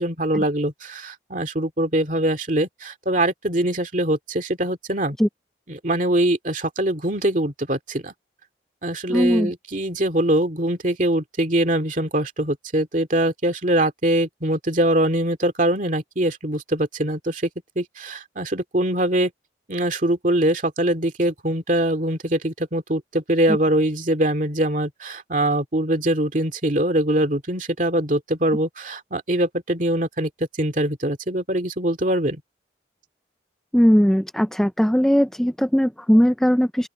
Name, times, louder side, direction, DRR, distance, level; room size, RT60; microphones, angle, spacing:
voice 1, 0.0-5.2 5.7-8.1 8.8-17.5 17.8-19.3 19.7-30.3 30.6-32.4, right 1 dB, 45° right, 2.3 m, -23 dB
voice 2, 9.1-9.5 33.7-36.9, equal, 5° left, 0.4 m, -18 dB
open air
head